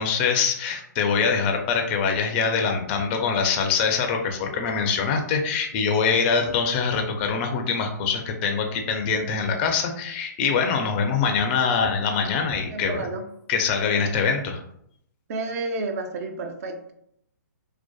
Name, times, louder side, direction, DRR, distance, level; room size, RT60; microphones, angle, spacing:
voice 1, 0.0-13.1 13.5-14.6, left 5 dB, 35° left, 3 dB, 0.4 m, -24 dB
voice 2, 12.7-13.2 15.3-16.9, right 3 dB, 50° right, 5 dB, 0.4 m, -31 dB
2.5 x 2.2 x 2.2 m, 0.72 s
hypercardioid pair, 140°, 10 cm